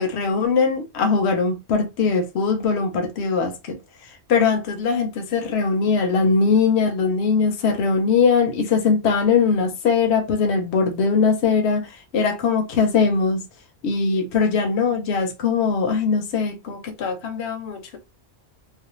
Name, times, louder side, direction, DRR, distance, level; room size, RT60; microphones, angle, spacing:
voice 1, 0.0-3.8 4.3-13.4 13.8-18.0, left 5 dB, 75° left, 0.9 m, -21 dB
2.4 x 2.0 x 3.0 m
omnidirectional pair, 1.1 m